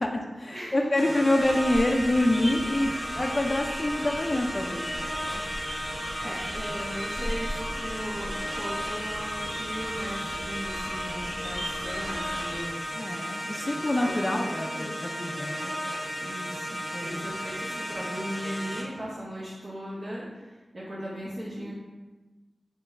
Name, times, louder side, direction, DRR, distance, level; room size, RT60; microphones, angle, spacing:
voice 1, 0.0-4.9 5.2-5.5 5.9-6.4 13.0-15.8 16.9-17.3, left 1 dB, 30° left, 1 dB, 0.4 m, -27 dB
voice 2, 0.5-0.9 6.2-13.1 13.8-14.3 14.7-15.1 16.2-21.7, equal, 55° right, -8 dB, 0.9 m, -38 dB
sound 1, 1.0-18.8, equal, 20° right, 1.0 m, -34 dB
sound 2, 1.4-12.6, equal, 15° left, 1.0 m, -38 dB
3.6 x 3.0 x 4.5 m, 1.2 s
wide cardioid pair, 90°, 0 cm